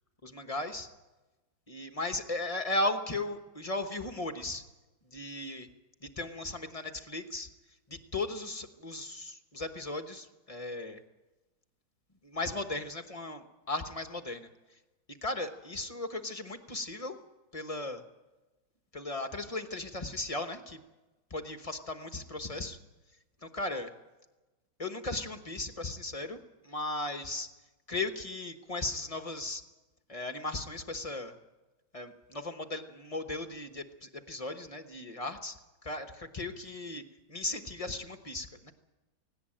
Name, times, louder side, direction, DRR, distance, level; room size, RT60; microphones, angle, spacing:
voice 1, 0.2-0.9 1.7-4.6 5.1-5.7 6.0-7.5 7.9-11.0 12.2-14.5 15.1-17.2 17.5-18.0 18.9-20.8 21.3-22.8 23.4-23.9 24.8-26.4 26.6-27.5 27.9-29.6 30.1-31.3 31.9-35.6 35.8-37.0 37.3-38.7, left 2 dB, 25° left, 7 dB, 0.8 m, -36 dB
18.0 x 18.0 x 8.8 m, 1.1 s
omnidirectional pair, 2.1 m